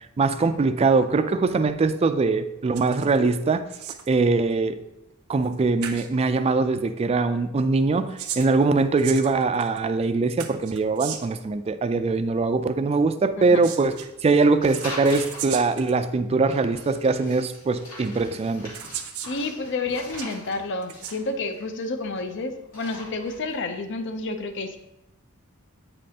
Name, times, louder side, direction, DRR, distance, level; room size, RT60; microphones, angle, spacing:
voice 1, 0.2-3.7 4.1-4.8 5.3-13.9 14.2-18.7, right 3 dB, 30° right, 11 dB, 0.3 m, -22 dB
sound 1, 2.7-3.2 3.5-4.2 5.4-5.5 5.8-6.1 7.9-9.8 10.4-11.4 13.4-14.1 14.7-15.9 16.9-17.0 18.0-18.1 18.7-19.4 19.9-20.3 20.8-21.2, right 9 dB, 85° right, 0.6 m, -36 dB
sound 2, 14.6-15.5 16.4-22.2 22.6-23.5, left 1 dB, 85° left, 2.5 m, -41 dB
voice 2, 19.3-24.8, left 3 dB, 60° left, 7 dB, 0.6 m, -30 dB
8.5 x 5.3 x 2.8 m, 0.89 s
head